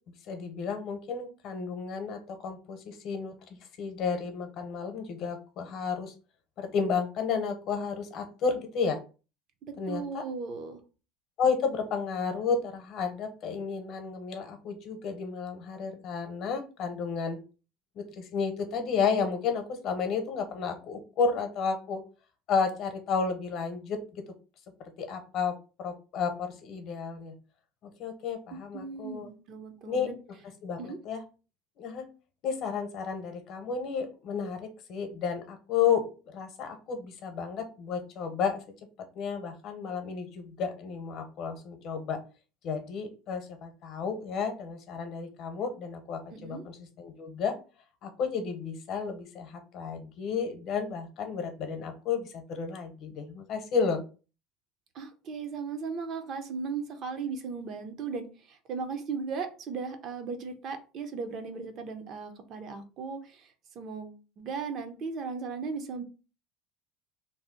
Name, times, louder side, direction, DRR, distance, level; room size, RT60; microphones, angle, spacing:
voice 1, 0.3-3.3 3.8-6.1 6.6-9.0 9.8-10.2 11.4-17.4 17.9-22.0 22.5-24.2 25.0-27.3 28.0-29.3 29.8-30.1 30.6-31.2 31.8-32.1 32.4-38.6 39.1-42.2 42.6-47.5 48.0-54.0, left 5 dB, 50° left, 6 dB, 0.8 m, -32 dB
voice 2, 9.7-10.8 28.7-30.2 30.8-31.0 46.3-46.6 54.9-66.0, right 5 dB, 45° right, 7 dB, 0.5 m, -37 dB
2.7 x 2.0 x 3.7 m, 0.34 s
supercardioid pair, 130°, 0 cm